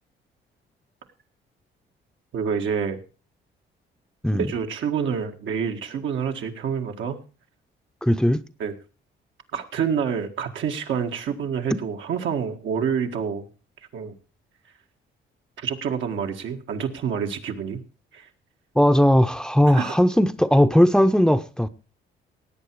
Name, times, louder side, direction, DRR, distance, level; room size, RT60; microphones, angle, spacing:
voice 1, 2.3-3.0 4.3-7.2 8.6-8.7 9.5-13.5 13.9-14.1 15.6-17.8 18.1-18.3 19.7-20.0, right 7 dB, 75° right, 1.9 m, -27 dB
voice 2, 8.0-8.4 11.7-11.8 18.8-21.7, equal, 5° left, 0.7 m, -18 dB
17.5 x 8.5 x 4.8 m
cardioid pair, 90°, 20 cm